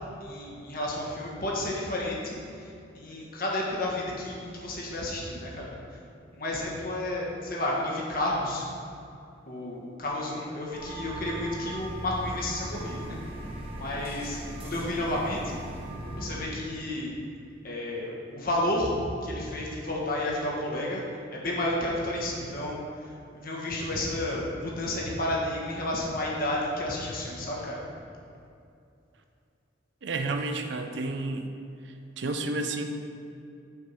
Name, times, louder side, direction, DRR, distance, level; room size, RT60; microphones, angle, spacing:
voice 1, 0.2-6.0 6.3-8.6 9.5-13.2 13.8-15.6 16.2-17.1 17.6-21.0 21.3-27.8, left 1 dB, 45° left, -3 dB, 1.4 m, -31 dB
sound 1, 10.7-16.4, right 1 dB, 30° right, 1.0 m, -38 dB
voice 2, 30.0-31.5 31.8-32.9, right 2 dB, 65° right, 6 dB, 0.6 m, -31 dB
7.3 x 4.6 x 5.6 m, 2.6 s
head